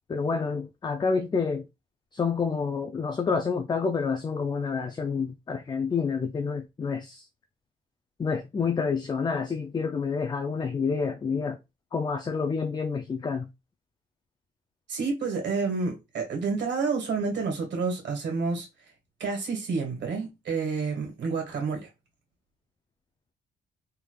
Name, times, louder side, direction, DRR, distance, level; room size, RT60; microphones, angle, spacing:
voice 1, 0.1-1.7 2.1-7.2 8.2-11.6 11.9-13.5, left 5 dB, 20° left, 0.4 m, -28 dB
voice 2, 14.9-18.7 19.2-21.9, right 4 dB, 65° right, 1.7 m, -29 dB
3.5 x 3.2 x 2.3 m
cardioid pair, 90°, 20 cm